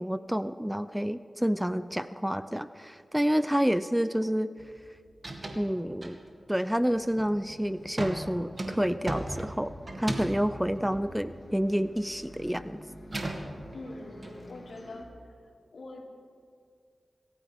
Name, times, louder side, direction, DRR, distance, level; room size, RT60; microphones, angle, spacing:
voice 1, 0.0-4.5 5.6-6.2 6.5-12.8, equal, 5° right, 13 dB, 0.5 m, -29 dB
sound 1, 4.6-4.9 5.1-5.7 6.0-6.5 7.0-7.4 8.0-12.0 12.3-14.3, right 1 dB, 45° right, 2.2 m, -37 dB
Bus, 6.7-15.0, left 1 dB, 40° left, 3.3 m, -50 dB
voice 2, 13.7-16.0, left 2 dB, 75° left, -2 dB, 3.4 m, -44 dB
27.0 x 14.5 x 3.7 m, 2.1 s
cardioid pair, 55°, 0 cm